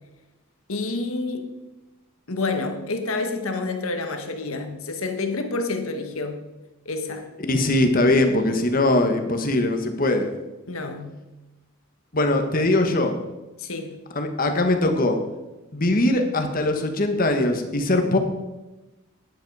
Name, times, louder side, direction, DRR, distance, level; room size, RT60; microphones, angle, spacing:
voice 1, 0.7-1.6 2.3-6.4 6.8-7.3 10.7-11.1 13.6-14.0, left 3 dB, 80° left, 1.5 m, -28 dB
voice 2, 7.5-10.3 12.1-13.2 14.1-15.2 15.7-18.2, left 2 dB, 40° left, 1.4 m, -21 dB
12.0 x 10.5 x 4.8 m
head